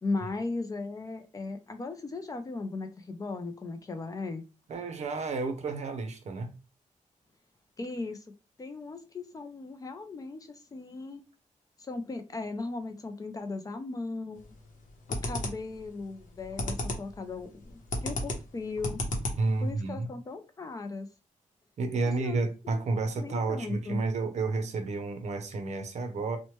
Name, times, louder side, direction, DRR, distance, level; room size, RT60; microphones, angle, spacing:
voice 1, 0.0-4.4 7.8-8.2 8.6-11.2 11.8-14.6 15.2-19.0 19.6-21.1 22.0-22.4 22.6-22.8 23.2-24.0, left 3 dB, 25° left, 0.3 m, -37 dB
voice 2, 4.7-6.5 19.4-20.1 21.8-26.4, right 3 dB, 60° right, 0.6 m, -31 dB
sound 1, 14.4-14.7 15.1-15.8 16.2-17.2 17.4-19.7, left 1 dB, 75° left, 0.7 m, -33 dB
3.0 x 2.1 x 2.9 m
wide cardioid pair, 180°, 13 cm